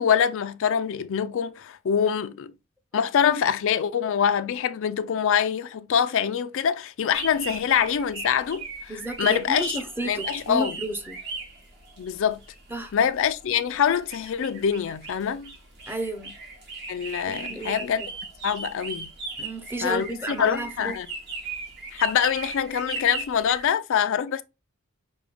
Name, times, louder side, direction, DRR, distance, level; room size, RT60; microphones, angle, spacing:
voice 1, 0.0-2.5 2.9-8.7 9.2-9.8 10.0-10.8 12.0-12.4 12.9-15.5 16.9-18.0 18.4-19.1 19.8-21.1 21.9-24.4, left 8 dB, 65° left, 0.4 m, -24 dB
sound 1, 7.1-23.7, right 3 dB, 55° right, 1.9 m, -38 dB
voice 2, 8.9-11.2 12.7-12.9 15.9-16.4 17.3-17.9 19.4-20.9, right 1 dB, 10° right, 0.7 m, -32 dB
6.1 x 2.3 x 3.3 m
head